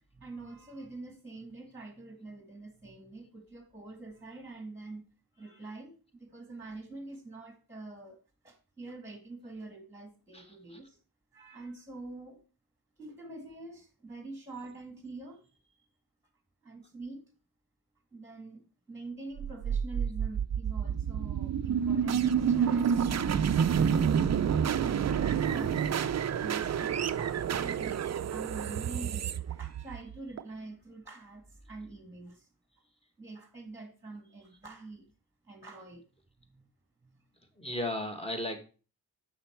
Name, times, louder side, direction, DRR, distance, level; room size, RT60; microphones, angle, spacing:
voice 1, 0.0-5.0 5.4-8.2 8.4-11.0 11.3-12.4 13.0-15.4 16.6-17.2 18.1-25.8 26.4-32.5 33.2-35.1 35.5-36.0 36.5-36.6 37.0-37.2, right 3 dB, 5° right, 4 dB, 1.8 m, -45 dB
voice 2, 10.3-10.8 37.6-38.6, left 1 dB, 15° left, 4 dB, 1.8 m, -35 dB
sound 1, 19.4-30.4, right 8 dB, 45° right, 0.5 m, -29 dB
7.9 x 5.7 x 4.5 m, 0.35 s
cardioid pair, 75°, 38 cm